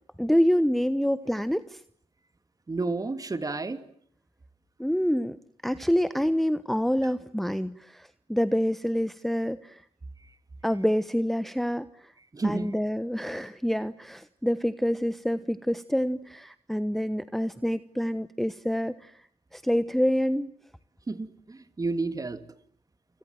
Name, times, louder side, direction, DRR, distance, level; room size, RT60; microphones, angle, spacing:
voice 1, 0.2-1.8 4.8-5.4 5.6-9.8 10.6-12.1 12.4-19.1 19.5-20.5, equal, ahead, 14 dB, 1.1 m, -27 dB
voice 2, 2.7-3.8 10.2-10.3 12.3-12.7 21.1-22.4, right 3 dB, 25° right, 11 dB, 2.8 m, -31 dB
29.5 x 25.5 x 7.8 m, 0.63 s
hypercardioid pair, 50°, 14 cm